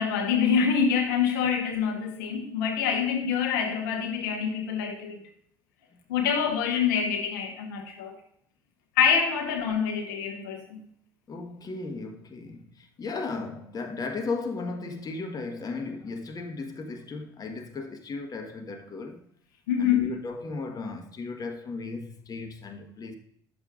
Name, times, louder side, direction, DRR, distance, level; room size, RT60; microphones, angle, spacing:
voice 1, 0.0-5.2 6.1-8.2 9.0-10.9 19.7-20.1, left 7 dB, 80° left, 1.2 m, -26 dB
voice 2, 11.3-19.3 19.8-23.1, left 3 dB, 35° left, 1.4 m, -35 dB
10.0 x 6.8 x 3.7 m
hypercardioid pair, 60°, 10 cm